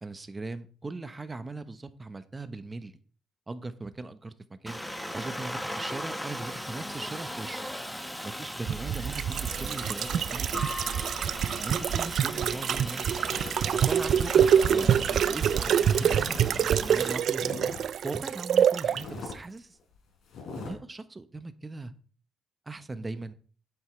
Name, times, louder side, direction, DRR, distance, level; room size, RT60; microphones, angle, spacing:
voice 1, 0.0-2.9 3.5-4.8 5.1-7.6 8.2-10.7 11.2-13.1 13.7-17.6 18.0-19.8 20.6-21.9 22.7-23.3, right 3 dB, 25° right, 1.0 m, -39 dB
Aircraft, 4.7-17.1, equal, 5° left, 1.2 m, -38 dB
sound 1, 8.7-19.0 19.3-19.4, right 9 dB, 65° right, 0.4 m, -26 dB
sound 2, 13.3-16.5 16.8-18.0 18.4-18.5 18.8-19.4 19.8-19.9 20.3-20.7, left 4 dB, 75° left, 4.2 m, -42 dB
9.9 x 8.0 x 3.3 m
cardioid pair, 90°, 0 cm